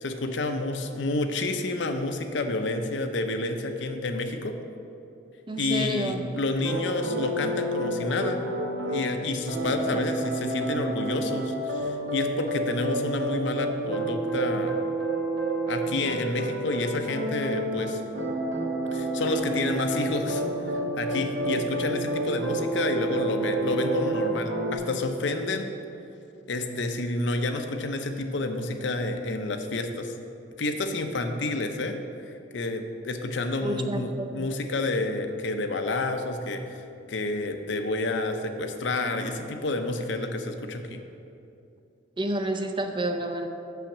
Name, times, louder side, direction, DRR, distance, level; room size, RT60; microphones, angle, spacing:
voice 1, 0.0-4.5 5.6-8.4 8.9-14.8 15.7-18.0 18.9-20.4 21.0-25.7 26.5-30.1 30.6-36.8 37.1-41.0, left 2 dB, 70° left, 6 dB, 0.7 m, -29 dB
voice 2, 5.5-6.2 9.9-10.0 33.6-34.3 42.2-43.5, right 1 dB, 25° right, 6 dB, 0.5 m, -29 dB
sound 1, 6.6-9.0 9.5-24.8, right 1 dB, 75° right, 1.6 m, -29 dB
6.3 x 5.8 x 7.2 m, 2.7 s
head